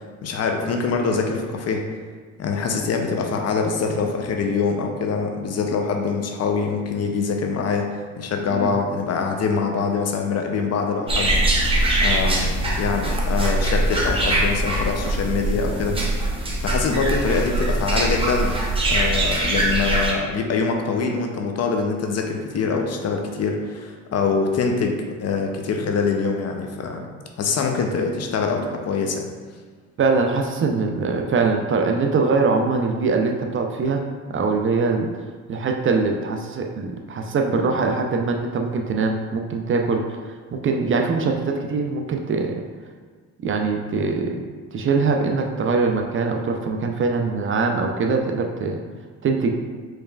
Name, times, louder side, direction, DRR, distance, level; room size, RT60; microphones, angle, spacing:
voice 1, 0.2-1.9 2.4-16.2 16.6-18.6 18.9-27.1 27.4-29.3, left 4 dB, 45° left, 3 dB, 0.6 m, -24 dB
sound 1, 11.1-20.1, right 1 dB, 15° right, 0.8 m, -22 dB
voice 2, 30.0-34.0 34.3-35.1 35.5-42.6 43.4-44.4 44.7-48.8 49.2-49.5, right 4 dB, 35° right, 3 dB, 0.4 m, -22 dB
4.6 x 3.2 x 2.3 m, 1.5 s
supercardioid pair, 75°, 35 cm